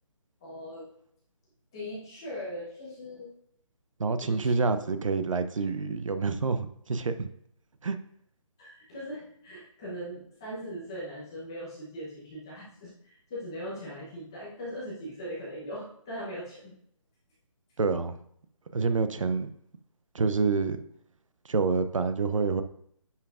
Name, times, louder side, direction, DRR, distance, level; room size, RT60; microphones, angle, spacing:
voice 1, 0.4-0.9 1.7-3.3 4.2-4.6 8.6-16.8, equal, 10° left, -7 dB, 0.8 m, -40 dB
voice 2, 4.0-7.3 7.8-8.0 17.8-18.2 18.7-19.5 20.1-20.8 21.5-22.6, right 4 dB, 70° right, 10 dB, 0.7 m, -27 dB
9.8 x 5.7 x 2.4 m, 0.68 s
hypercardioid pair, 180°, 17 cm